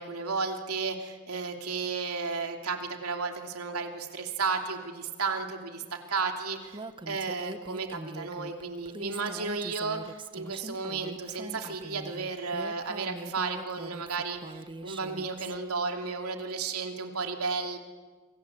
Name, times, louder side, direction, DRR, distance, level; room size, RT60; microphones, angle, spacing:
voice 1, 0.0-17.8, right 4 dB, 85° right, 4 dB, 3.0 m, -33 dB
Female speech woman speaking, 6.7-15.6, right 2 dB, 25° right, 0.9 m, -42 dB
28.5 x 24.0 x 8.5 m, 1.4 s
head